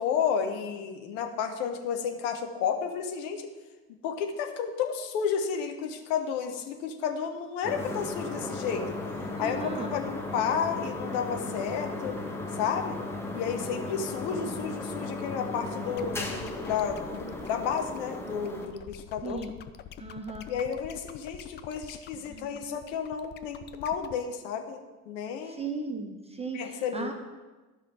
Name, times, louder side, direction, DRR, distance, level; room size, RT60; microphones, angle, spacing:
voice 1, 0.0-3.5 4.0-8.9 9.4-12.2 12.5-12.9 13.3-19.4 20.5-24.8 25.1-25.7 26.5-27.1, left 7 dB, 55° left, 5 dB, 1.3 m, -32 dB
sound 1, 7.6-18.7, left 2 dB, 5° left, 1.5 m, -36 dB
voice 2, 9.3-9.9 14.3-14.5 19.2-19.5 20.0-20.4 22.3-22.5 25.5-26.6 26.9-27.1, right 3 dB, 15° right, 4 dB, 1.0 m, -36 dB
sound 2, 16.0-24.2, left 10 dB, 25° left, 0.5 m, -46 dB
12.5 x 5.6 x 4.9 m, 1.2 s
figure-of-eight pair, 70°, 44 cm